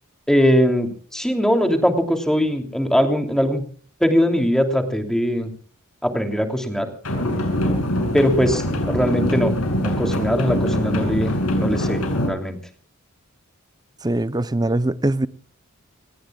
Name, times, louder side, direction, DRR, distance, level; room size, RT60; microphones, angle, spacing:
voice 1, 0.3-3.6 4.0-5.5 6.0-6.9 8.1-9.5 9.8-11.3 11.6-12.0 12.3-12.6, equal, 5° left, 3.0 m, -20 dB
sound 1, 7.0-12.3, equal, 85° left, 7.1 m, -23 dB
voice 2, 14.0-15.3, right 1 dB, 20° right, 0.7 m, -22 dB
29.5 x 18.5 x 2.4 m
head